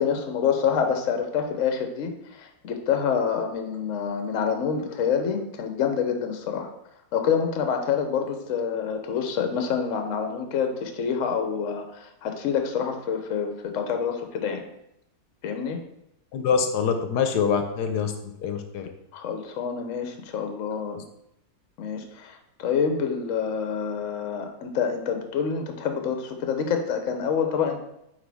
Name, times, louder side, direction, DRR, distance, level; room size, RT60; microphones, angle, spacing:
voice 1, 0.0-6.7 7.1-14.6 15.4-15.8 19.1-21.0 21.8-27.8, left 7 dB, 60° left, 5 dB, 1.0 m, -27 dB
voice 2, 16.3-18.9, left 6 dB, 80° left, 6 dB, 1.2 m, -25 dB
9.0 x 3.3 x 3.4 m, 0.80 s
omnidirectional pair, 1.7 m